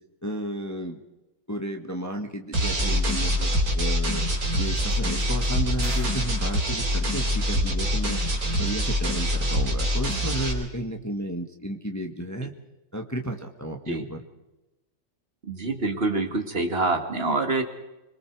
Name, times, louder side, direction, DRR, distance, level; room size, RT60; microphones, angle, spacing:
voice 1, 0.2-1.0 1.5-4.3 4.6-8.2 8.6-12.5 12.9-14.2, right 1 dB, 10° left, 3 dB, 1.3 m, -33 dB
sound 1, 2.5-10.5, equal, 45° right, 3.9 m, -25 dB
sound 2, 5.8-7.2, right 3 dB, 90° right, 4.6 m, -42 dB
voice 2, 15.4-17.6, right 3 dB, 30° right, 5 dB, 2.2 m, -26 dB
25.5 x 22.5 x 4.8 m, 1.0 s
omnidirectional pair, 2.2 m